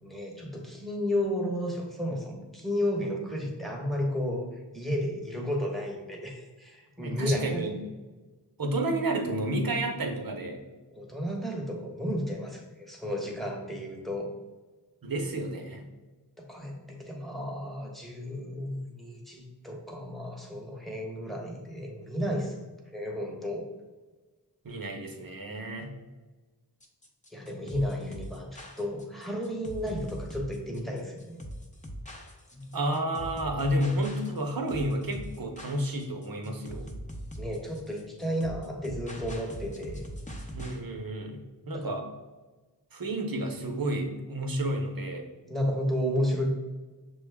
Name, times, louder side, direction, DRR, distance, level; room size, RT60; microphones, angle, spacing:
voice 1, 0.0-4.5 4.7-7.6 10.9-14.3 16.4-22.6 22.9-23.6 27.3-31.4 32.5-32.8 36.4-36.6 37.4-40.0 41.7-41.9 45.5-46.6, equal, ahead, 0 dB, 1.0 m, -32 dB
voice 2, 7.0-7.7 8.6-10.6 15.0-15.8 24.6-25.9 32.7-36.9 40.5-42.0 42.9-45.3, right 1 dB, 55° right, 3 dB, 0.8 m, -31 dB
sound 1, 26.8-40.8, equal, 20° left, 0.7 m, -41 dB
6.1 x 2.3 x 3.4 m, 1.2 s
wide cardioid pair, 50°, 41 cm